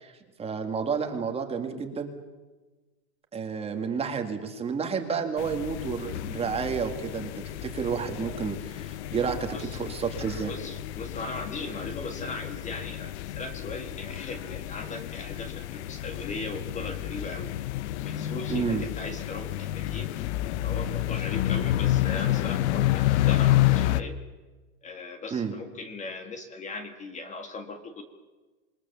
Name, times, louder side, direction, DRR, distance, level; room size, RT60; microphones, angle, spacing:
voice 1, 0.0-2.1 3.3-7.3 7.6-10.5 18.5-18.9 25.3-25.6, right 6 dB, 15° right, 5 dB, 2.1 m, -30 dB
sound 1, 5.4-24.0, left 14 dB, 55° left, 1.0 m, -29 dB
voice 2, 10.4-17.5 18.0-20.1 20.6-24.2 24.8-28.0, left 3 dB, 20° left, 6 dB, 1.7 m, -38 dB
27.0 x 20.5 x 7.1 m, 1.2 s
supercardioid pair, 150°, 40 cm